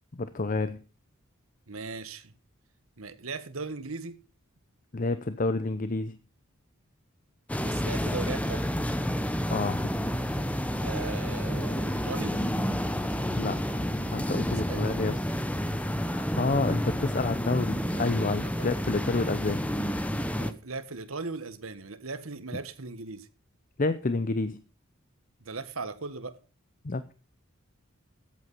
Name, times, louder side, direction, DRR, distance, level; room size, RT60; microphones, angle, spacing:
voice 1, 0.2-0.8 4.9-6.2 9.5-9.9 13.3-13.8 14.1-15.2 16.1-19.6 23.8-24.6 26.8-27.1, left 3 dB, 40° left, 0.7 m, -29 dB
voice 2, 1.7-2.3 3.0-4.2 7.6-8.7 10.8-12.4 14.7-15.0 18.4-18.7 20.3-23.3 25.4-26.4, right 3 dB, 80° right, 1.5 m, -38 dB
sound 1, 7.5-20.5, equal, 5° left, 0.9 m, -30 dB
14.0 x 8.4 x 5.5 m
head